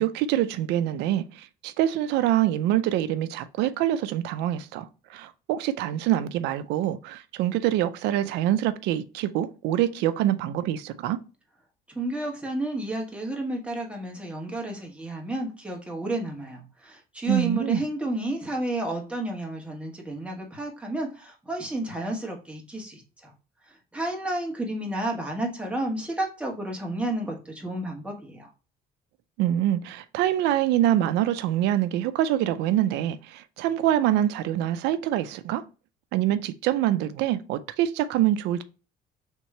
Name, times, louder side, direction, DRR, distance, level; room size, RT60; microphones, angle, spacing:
voice 1, 0.0-11.2 17.3-17.8 29.4-35.6 36.1-38.6, right 12 dB, 90° right, 0.4 m, -25 dB
voice 2, 11.9-23.3 23.9-28.5, right 1 dB, 5° right, 1.3 m, -31 dB
3.6 x 3.0 x 4.2 m
cardioid pair, 110°, 17 cm